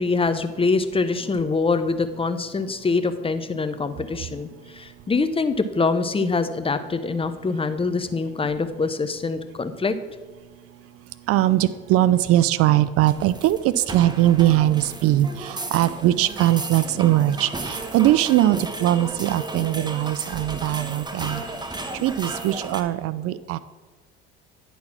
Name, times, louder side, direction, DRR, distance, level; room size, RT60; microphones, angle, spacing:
voice 1, 0.0-10.0, left 4 dB, 20° left, 10 dB, 0.6 m, -24 dB
voice 2, 11.3-21.4 22.0-23.6, right 14 dB, 50° right, 16 dB, 0.4 m, -21 dB
sound 1, 13.0-22.8, right 2 dB, 15° right, 1.0 m, -34 dB
10.5 x 4.1 x 5.9 m, 1.3 s
hypercardioid pair, 70°, 30 cm